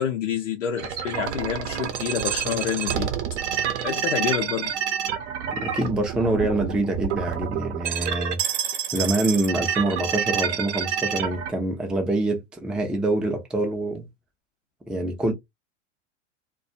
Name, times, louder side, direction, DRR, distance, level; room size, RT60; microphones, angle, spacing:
voice 1, 0.0-3.1 3.8-4.7, left 8 dB, 85° left, 0.6 m, -28 dB
sound 1, 0.8-11.5, right 9 dB, 65° right, 0.8 m, -28 dB
voice 2, 5.5-8.4 8.9-14.0 14.9-15.3, right 2 dB, ahead, 0.4 m, -25 dB
2.3 x 2.2 x 2.7 m
hypercardioid pair, 95°, 37 cm